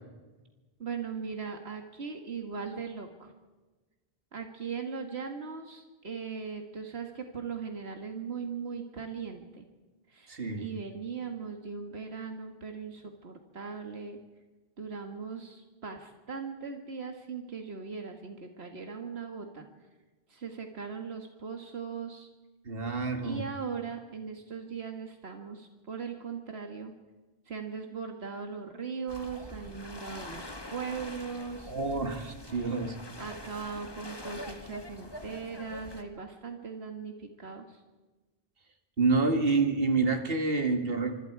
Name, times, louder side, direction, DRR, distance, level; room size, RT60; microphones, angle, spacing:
voice 1, 0.8-3.3 4.3-9.7 10.1-14.2 14.8-19.7 20.3-22.3 23.2-26.9 27.5-31.7 33.2-37.8, right 5 dB, 90° right, 4 dB, 2.0 m, -39 dB
voice 2, 10.3-10.7 22.7-23.4 31.7-33.0 39.0-41.1, right 3 dB, 70° right, 5 dB, 2.4 m, -28 dB
sound 1, 29.1-36.0, left 1 dB, 25° left, 1.7 m, -44 dB
25.5 x 25.5 x 4.8 m, 1.2 s
omnidirectional pair, 1.0 m